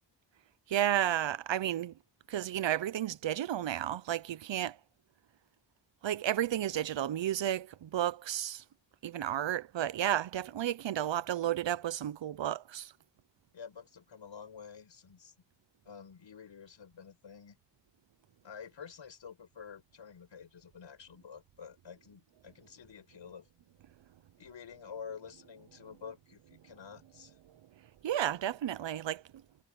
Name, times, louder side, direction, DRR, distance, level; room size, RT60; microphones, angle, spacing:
voice 1, 0.7-1.9 2.3-4.8 6.0-8.6 9.0-12.9 28.0-29.2, right 11 dB, 85° right, 0.7 m, -32 dB
voice 2, 13.5-15.3 15.9-17.6 18.4-23.5 24.4-27.4, left 7 dB, 85° left, 5.6 m, -49 dB
wide cardioid pair, 105°, 43 cm